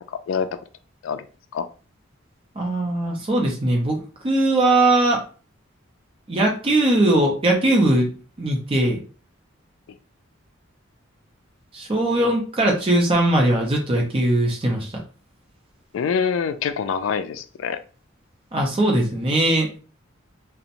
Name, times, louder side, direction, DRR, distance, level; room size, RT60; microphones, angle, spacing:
voice 1, 0.1-0.5 1.0-1.2 1.5-1.7 15.9-17.8, left 6 dB, 70° left, 0.3 m, -25 dB
voice 2, 2.6-4.0 4.2-5.2 6.3-8.1 8.4-9.0 11.7-15.0 18.5-19.7, right 1 dB, 25° right, 0.5 m, -20 dB
2.8 x 2.0 x 2.5 m
head